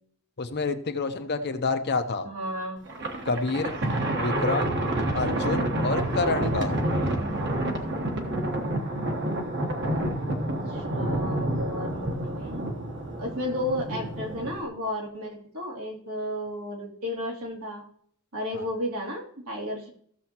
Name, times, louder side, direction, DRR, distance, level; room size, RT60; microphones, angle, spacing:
voice 1, 0.4-2.3 3.2-3.7 4.1-4.7 5.1-6.8 18.5-18.7, left 3 dB, 50° left, 8 dB, 0.8 m, -28 dB
voice 2, 2.2-2.9 6.3-6.5 7.1-7.5 10.3-12.6 13.2-17.8 18.3-19.9, left 1 dB, 85° right, -2 dB, 2.9 m, -33 dB
Thunder, 2.9-14.6, right 1 dB, 50° right, 1.3 m, -28 dB
15.5 x 6.9 x 2.9 m, 0.63 s
head